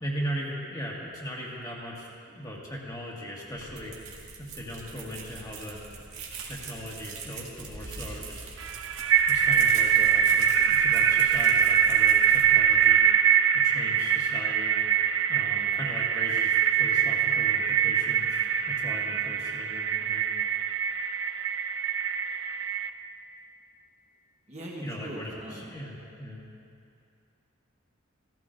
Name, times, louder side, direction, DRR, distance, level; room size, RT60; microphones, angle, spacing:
voice 1, 0.0-3.9 4.4-5.8 6.4-8.4 9.3-13.0 13.5-14.8 15.3-20.3 24.8-26.4, equal, 15° left, -3 dB, 1.7 m, -38 dB
sound 1, 3.5-12.9, right 4 dB, 80° right, 1.8 m, -43 dB
sound 2, 8.6-22.9, right 8 dB, 60° right, 0.5 m, -23 dB
voice 2, 24.5-25.6, right 1 dB, 30° right, -3 dB, 1.2 m, -40 dB
16.5 x 15.5 x 2.6 m, 2.5 s
head